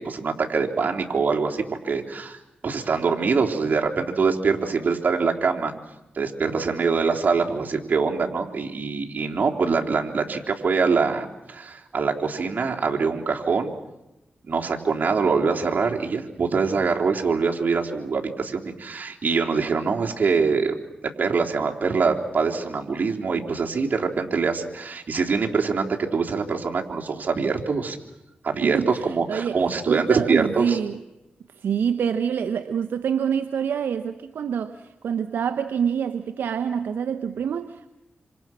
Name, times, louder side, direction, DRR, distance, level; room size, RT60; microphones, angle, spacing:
voice 1, 0.0-5.7 6.2-13.7 14.4-20.7 21.2-28.0 28.4-30.8, right 5 dB, 60° right, 3.7 m, -24 dB
voice 2, 28.6-31.0 31.6-37.9, right 7 dB, 85° right, 0.9 m, -26 dB
27.5 x 27.0 x 6.2 m
cardioid pair, 55°, 3 cm